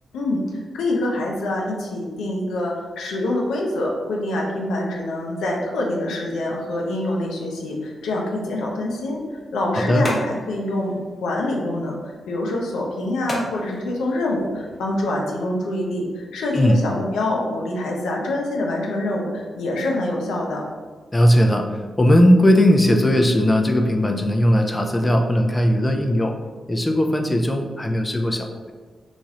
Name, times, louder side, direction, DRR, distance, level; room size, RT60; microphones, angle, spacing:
voice 1, 0.1-9.2 9.5-20.6, left 1 dB, 90° left, -1 dB, 0.5 m, -25 dB
sound 1, 9.0-15.0, left 1 dB, 40° left, 0.8 m, -36 dB
voice 2, 9.7-10.1 16.5-16.8 21.1-26.3 26.7-28.7, equal, 20° left, 3 dB, 0.4 m, -18 dB
3.0 x 2.4 x 2.8 m, 1.4 s
cardioid pair, 60°, 0 cm